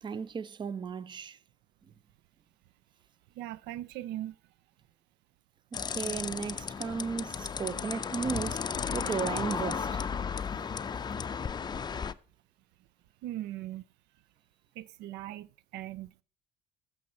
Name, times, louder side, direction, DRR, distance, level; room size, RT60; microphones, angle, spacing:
voice 1, 0.0-1.4 5.9-8.6 8.9-9.9, right 6 dB, 25° right, 0.5 m, -35 dB
voice 2, 3.3-4.4 13.2-13.9 14.7-16.2, right 14 dB, 85° right, 0.5 m, -39 dB
sound 1, 5.7-12.1, left 6 dB, 25° left, 0.5 m, -34 dB
15.0 x 6.2 x 4.2 m
cardioid pair, 110°, 17 cm